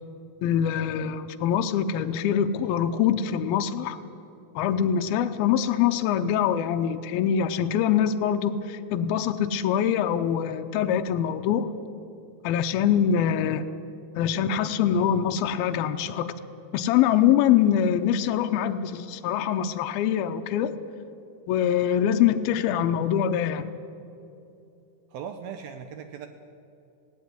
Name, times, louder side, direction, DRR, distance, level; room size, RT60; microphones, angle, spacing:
voice 1, 0.4-4.0 4.6-11.7 12.4-13.7 14.2-16.3 16.7-20.7 21.5-23.7, left 9 dB, 80° left, 7 dB, 2.2 m, -24 dB
voice 2, 25.1-26.3, right 7 dB, 75° right, 7 dB, 2.4 m, -38 dB
18.0 x 17.0 x 9.4 m, 2.7 s
omnidirectional pair, 5.1 m